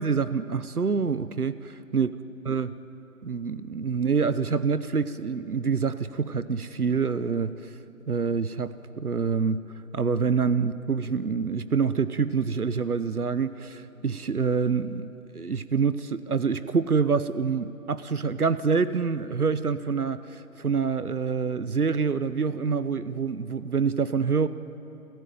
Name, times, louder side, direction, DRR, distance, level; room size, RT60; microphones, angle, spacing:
voice 1, 0.0-2.1 2.5-2.7 3.2-7.5 8.1-9.6 9.9-24.5, right 5 dB, 70° right, 14 dB, 1.1 m, -26 dB
29.5 x 16.0 x 9.3 m, 2.8 s
figure-of-eight pair, 170°, 46 cm